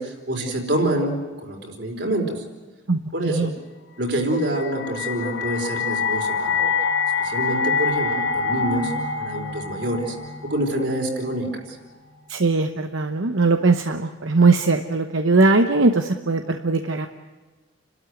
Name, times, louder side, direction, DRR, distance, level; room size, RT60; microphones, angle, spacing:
voice 1, 0.0-2.4 3.1-3.5 4.0-6.7 7.2-10.2 10.4-11.8, right 1 dB, 60° right, 2 dB, 4.3 m, -26 dB
sound 1, 4.4-11.5, left 5 dB, 75° left, 2.0 m, -26 dB
voice 2, 12.3-17.1, right 3 dB, 80° right, 6 dB, 1.0 m, -20 dB
30.0 x 13.0 x 9.4 m, 1.3 s
head